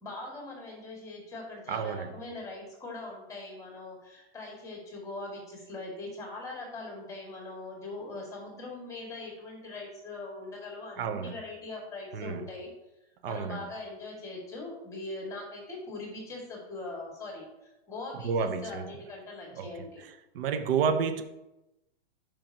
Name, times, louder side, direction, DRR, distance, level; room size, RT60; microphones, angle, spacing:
voice 1, 0.0-12.7 13.3-17.5 17.9-20.1, left 2 dB, 10° left, 2.1 m, -41 dB
voice 2, 1.7-2.1 11.0-11.4 12.1-12.5 13.2-13.7 18.2-18.9 19.6-19.7 20.3-21.2, right 6 dB, 60° right, 0.8 m, -30 dB
13.0 x 5.5 x 2.9 m
hypercardioid pair, 150°, 32 cm